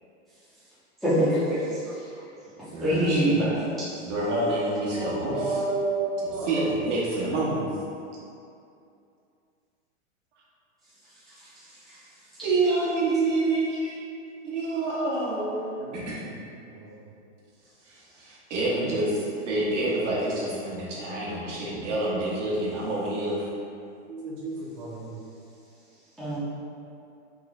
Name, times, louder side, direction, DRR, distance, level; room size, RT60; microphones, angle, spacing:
voice 1, 1.0-1.6 2.8-3.4 26.2-26.4, right 1 dB, ahead, -14 dB, 0.6 m, -23 dB
voice 2, 2.7-3.6 4.0-5.6 6.2-7.7 12.4-13.9 14.4-15.5 15.9-16.1 18.2-23.5, right 2 dB, 75° right, -5 dB, 1.2 m, -27 dB
voice 3, 5.0-6.7 15.8-15.9 16.7-16.9 24.1-25.2, right 3 dB, 35° right, -6 dB, 0.7 m, -31 dB
3.7 x 2.4 x 3.1 m, 2.5 s
supercardioid pair, 150°, 37 cm